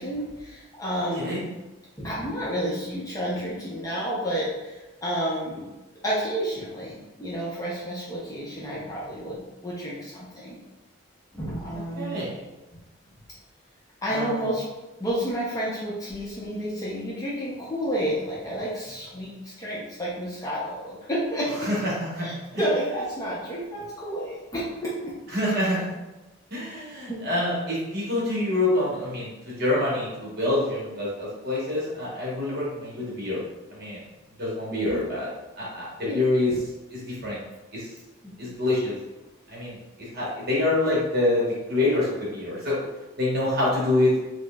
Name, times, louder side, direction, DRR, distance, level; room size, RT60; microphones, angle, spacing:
voice 1, 0.0-1.4 2.0-5.6 6.0-10.6 11.3-12.2 14.0-14.6 15.0-21.7 22.2-22.3 22.6-25.2 27.1-27.2 34.7-35.0 36.0-36.2 36.5-36.6 38.2-38.3, equal, 15° left, -6 dB, 0.6 m, -30 dB
voice 2, 12.0-12.4 14.1-14.4 21.6-22.6 25.3-25.9 26.5-33.4 33.7-34.0 34.4-35.3 35.6-36.5 36.9-37.4 37.7-37.9 38.4-39.0 39.5-42.9 43.2-44.2, left 2 dB, 50° right, -6 dB, 1.1 m, -26 dB
4.3 x 2.1 x 2.3 m, 1.1 s
head